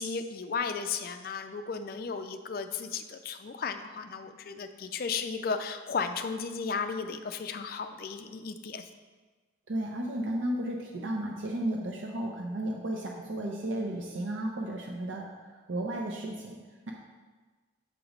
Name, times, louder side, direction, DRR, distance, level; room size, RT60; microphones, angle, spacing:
voice 1, 0.0-8.8, left 5 dB, 50° left, 8 dB, 0.3 m, -34 dB
voice 2, 9.7-15.3 15.7-16.6, right 1 dB, 80° right, 0 dB, 0.6 m, -33 dB
7.4 x 3.0 x 5.0 m, 1.3 s
head